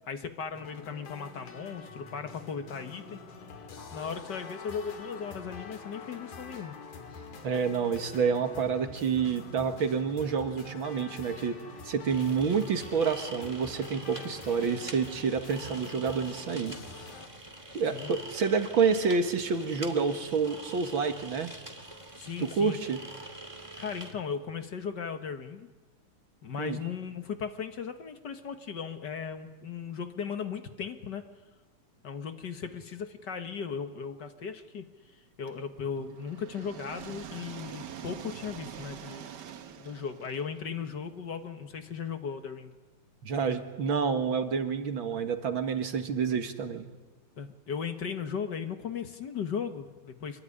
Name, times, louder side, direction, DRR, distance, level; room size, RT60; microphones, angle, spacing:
voice 1, 0.1-3.2 3.6-6.7 17.9-18.2 22.2-22.8 23.8-25.7 26.4-31.2 32.0-39.3 39.8-42.7 47.4-50.4, left 6 dB, 45° left, 8 dB, 1.5 m, -37 dB
sound 1, 0.5-17.3, left 4 dB, 85° left, 3.8 m, -46 dB
voice 2, 7.4-16.8 17.7-21.5 22.4-23.0 26.6-26.8 43.2-46.9, right 5 dB, 45° right, 7 dB, 2.1 m, -28 dB
sound 2, 12.1-24.1, right 1 dB, 10° right, 2.0 m, -45 dB
sound 3, 35.5-41.4, right 8 dB, 75° right, 0.9 m, -45 dB
26.5 x 22.5 x 9.9 m, 1.2 s
omnidirectional pair, 3.5 m